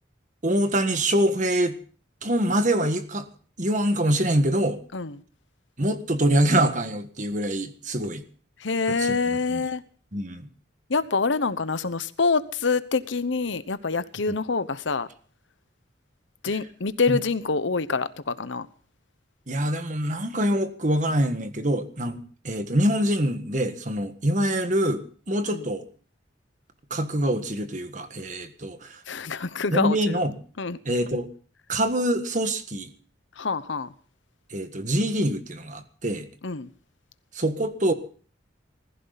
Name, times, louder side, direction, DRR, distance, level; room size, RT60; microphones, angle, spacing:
voice 1, 0.4-1.8 2.2-3.3 3.6-4.8 5.8-8.2 8.9-9.6 10.1-10.5 14.3-14.4 16.4-16.6 17.1-17.2 19.5-25.8 26.9-29.0 29.7-30.4 30.8-31.3 31.7-32.9 34.5-36.3 37.3-37.9, right 1 dB, 40° right, 1.6 m, -25 dB
voice 2, 8.6-9.8 10.9-15.1 16.4-18.7 25.5-25.6 29.1-30.2 30.6-30.8 33.4-33.9 36.4-36.7, left 4 dB, 80° left, 1.0 m, -26 dB
20.5 x 15.0 x 4.1 m
head